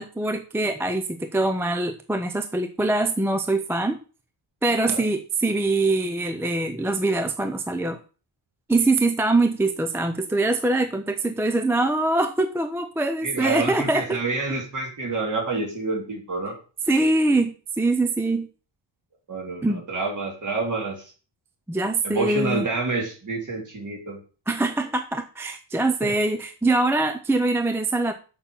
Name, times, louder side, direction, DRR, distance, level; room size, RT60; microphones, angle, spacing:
voice 1, 0.0-4.0 4.6-8.0 8.7-14.2 16.9-18.5 19.6-19.8 21.7-22.6 24.5-28.1, right 2 dB, 5° right, 7 dB, 0.4 m, -23 dB
voice 2, 13.2-16.6 19.3-21.1 22.0-24.2 26.0-26.1, right 3 dB, 40° right, 0 dB, 3.0 m, -28 dB
7.0 x 5.7 x 7.0 m, 0.37 s
wide cardioid pair, 180°, 47 cm